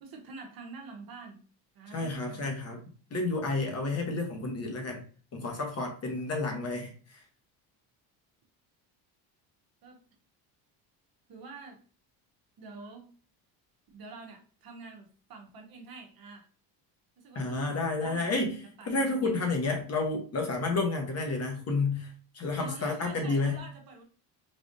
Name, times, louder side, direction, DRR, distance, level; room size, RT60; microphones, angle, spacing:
voice 1, 0.0-1.4 1.7-2.6 9.8-10.0 11.3-11.8 12.6-13.1 13.9-16.5 17.2-19.4 22.6-24.0, right 3 dB, 55° right, 2 dB, 0.9 m, -47 dB
voice 2, 1.9-2.8 3.1-5.0 5.3-7.2 17.3-18.6 18.9-23.6, left 3 dB, 35° left, 2 dB, 0.9 m, -30 dB
3.4 x 2.4 x 2.6 m, 0.41 s
supercardioid pair, 95°, 44 cm